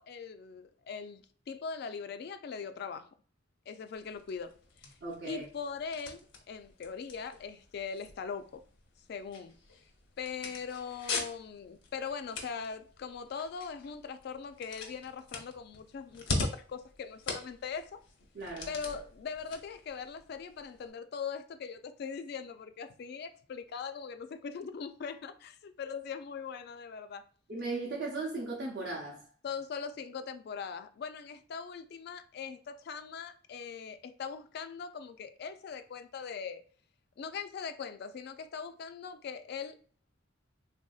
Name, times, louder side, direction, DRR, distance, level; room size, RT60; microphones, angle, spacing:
voice 1, 0.0-3.1 3.7-4.5 5.2-8.6 9.1-9.6 10.2-18.0 18.7-27.2 29.4-36.6 37.2-39.8, left 6 dB, 55° left, 0.3 m, -41 dB
sound 1, 3.9-20.9, left 3 dB, 75° left, 0.8 m, -43 dB
voice 2, 5.0-5.4 18.3-18.7 27.5-29.2, right 3 dB, 60° right, 0.6 m, -37 dB
3.4 x 2.6 x 2.3 m
head